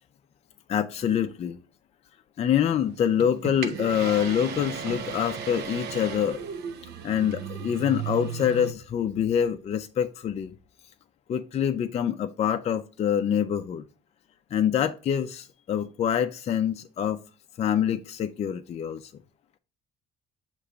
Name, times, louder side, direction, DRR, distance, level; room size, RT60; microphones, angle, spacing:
voice 1, 0.7-1.6 2.4-6.4 7.0-10.5 11.3-13.8 14.5-17.2 17.6-19.1, left 9 dB, 40° left, 0.4 m, -26 dB
sound 1, 2.7-8.7, right 7 dB, 75° right, 0.7 m, -35 dB
6.6 x 3.0 x 4.8 m
cardioid pair, 110°, 17 cm